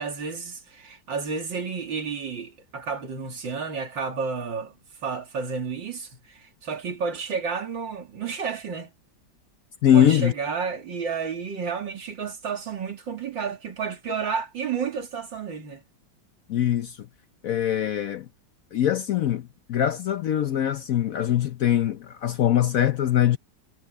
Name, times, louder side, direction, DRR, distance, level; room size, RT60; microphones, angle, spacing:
voice 1, 0.0-4.7 5.0-8.9 9.9-15.8, right 5 dB, 80° right, 3.3 m, -31 dB
voice 2, 9.8-10.3 16.5-17.0 17.4-18.3 18.7-23.4, left 10 dB, 65° left, 0.9 m, -22 dB
omnidirectional pair, 2.0 m